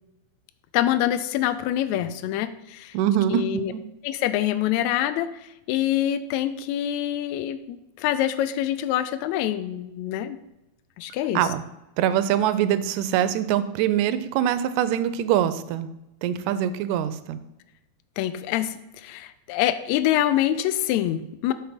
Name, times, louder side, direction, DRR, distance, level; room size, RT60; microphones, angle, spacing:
voice 1, 0.7-3.0 3.3-3.7 4.0-10.4 11.0-11.4 18.2-21.5, left 12 dB, 80° left, 12 dB, 1.8 m, -25 dB
voice 2, 2.9-3.8 11.3-11.6 12.0-15.9 16.2-17.4, right 10 dB, 85° right, 12 dB, 1.9 m, -23 dB
7.9 x 4.3 x 5.1 m, 0.92 s
omnidirectional pair, 3.3 m